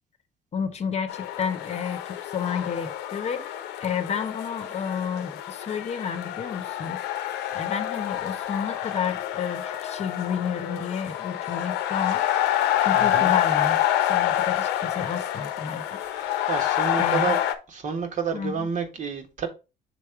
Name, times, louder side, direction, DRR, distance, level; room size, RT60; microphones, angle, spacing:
voice 1, 0.5-3.5 3.8-7.0 7.5-12.2 12.8-16.0 17.0-17.4 18.3-18.7, left 7 dB, 40° left, 0.9 m, -31 dB
sound 1, 1.1-17.5, left 12 dB, 90° left, 0.8 m, -27 dB
voice 2, 12.9-13.3 16.0-17.4 17.7-19.5, right 6 dB, 45° right, 1.6 m, -30 dB
6.3 x 3.5 x 4.7 m
cardioid pair, 110°, 17 cm